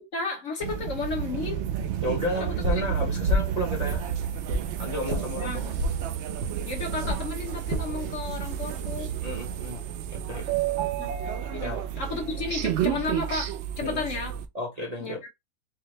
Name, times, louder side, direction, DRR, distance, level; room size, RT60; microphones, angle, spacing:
voice 1, 0.1-1.6 2.4-2.8 5.1-5.7 6.6-9.1 10.8-11.1 11.5-14.3 15.0-15.3, left 4 dB, 55° left, 1.2 m, -33 dB
sound 1, 0.6-14.5, right 10 dB, 85° right, 0.6 m, -31 dB
voice 2, 2.0-4.0 4.8-5.8 9.2-10.5 11.6-11.8 13.8-14.0 14.5-15.2, equal, 30° right, 0.8 m, -32 dB
sound 2, 2.6-2.9 3.3-3.6 3.9-4.7 5.1-5.3 5.8-6.0 6.4-6.6 7.0-7.2 7.7-7.9 8.5-8.8, left 1 dB, 70° right, 1.6 m, -28 dB
4.6 x 2.2 x 3.2 m
omnidirectional pair, 1.8 m